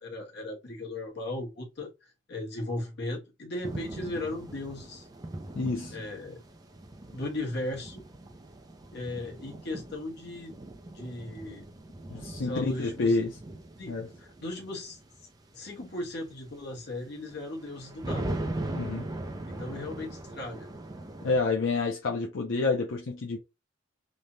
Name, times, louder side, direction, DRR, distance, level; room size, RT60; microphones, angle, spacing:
voice 1, 0.0-5.1 5.9-6.4 7.1-8.0 8.9-10.6 10.9-11.6 12.4-13.2 13.8-15.0 15.5-18.4 19.5-20.7, left 1 dB, 60° left, 1.1 m, -37 dB
sound 1, 3.6-21.4, right 1 dB, 20° right, 0.4 m, -40 dB
voice 2, 5.5-6.0 12.1-13.3 13.9-14.1 18.7-19.1 21.2-23.4, left 3 dB, 80° left, 0.6 m, -28 dB
3.2 x 2.2 x 2.6 m
head